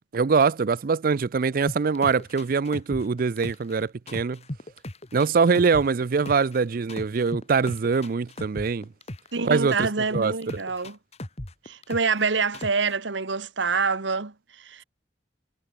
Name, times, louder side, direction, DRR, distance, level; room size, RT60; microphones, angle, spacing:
voice 1, 0.1-4.4 5.1-8.9 9.5-10.3, right 5 dB, 50° right, 0.4 m, -23 dB
sound 1, 1.7-3.8 4.1-6.6 6.9-9.4 9.7-12.2 12.5-12.9, left 1 dB, 35° left, 1.8 m, -36 dB
voice 2, 9.3-11.0 11.6-14.8, right 4 dB, 80° right, 1.4 m, -26 dB
head